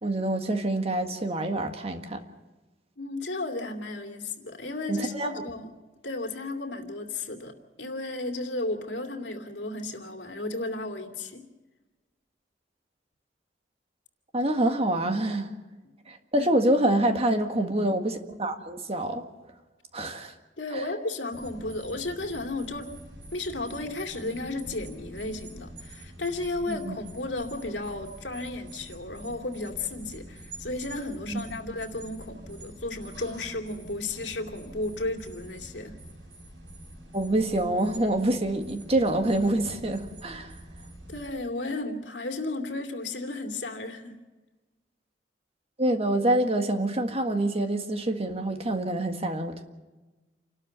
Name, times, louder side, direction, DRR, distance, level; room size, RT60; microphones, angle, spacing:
voice 1, 0.0-2.2 4.9-5.3 14.3-15.5 16.1-19.2 19.9-20.3 20.7-20.8 26.7-27.0 31.3-31.4 37.1-40.5 45.8-49.6, right 1 dB, 35° right, 1.7 m, -26 dB
voice 2, 3.0-5.7 6.0-7.5 7.8-11.5 16.3-16.5 20.6-22.9 23.3-36.0 41.1-44.2, left 2 dB, 80° left, 2.6 m, -34 dB
sound 1, 21.3-41.3, right 1 dB, 80° right, 7.5 m, -46 dB
28.5 x 12.5 x 8.1 m
head